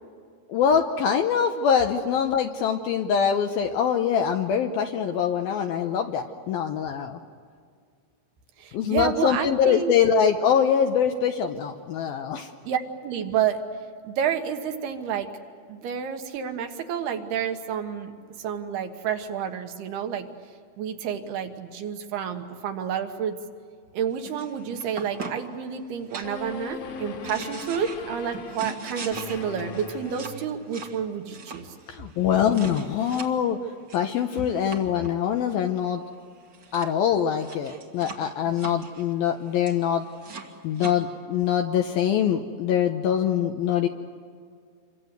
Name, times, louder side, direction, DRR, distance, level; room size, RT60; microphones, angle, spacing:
voice 1, 0.5-7.2 8.7-12.5 31.9-33.6 33.9-36.0 36.7-40.0 40.6-43.9, left 8 dB, 75° left, 5 dB, 2.3 m, -24 dB
voice 2, 8.6-9.9 12.7-13.6 14.0-15.3 15.7-18.1 18.4-20.3 20.8-23.4 23.9-31.7, right 8 dB, 70° right, 6 dB, 3.0 m, -29 dB
sound 1, 24.2-25.6 26.1-26.7 27.0-33.3 33.9-35.1 36.1-36.2 36.4-36.9 37.3-40.9, right 5 dB, 45° right, 1.5 m, -41 dB
sound 2, 26.2-30.9, left 4 dB, 55° left, 3.1 m, -39 dB
28.0 x 24.5 x 8.1 m, 2.1 s
omnidirectional pair, 5.2 m